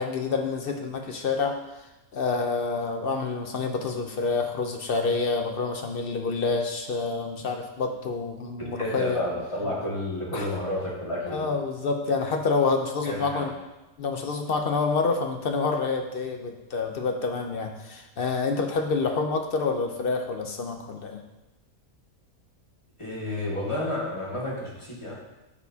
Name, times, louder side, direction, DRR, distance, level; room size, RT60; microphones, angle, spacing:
voice 1, 0.0-9.2 10.3-10.5 11.3-13.5 14.0-21.2, left 4 dB, 55° left, 4 dB, 0.6 m, -28 dB
voice 2, 8.6-11.5 13.0-13.5 23.0-25.1, left 1 dB, 20° left, -6 dB, 1.8 m, -31 dB
12.0 x 4.5 x 2.7 m, 1.0 s
omnidirectional pair, 1.5 m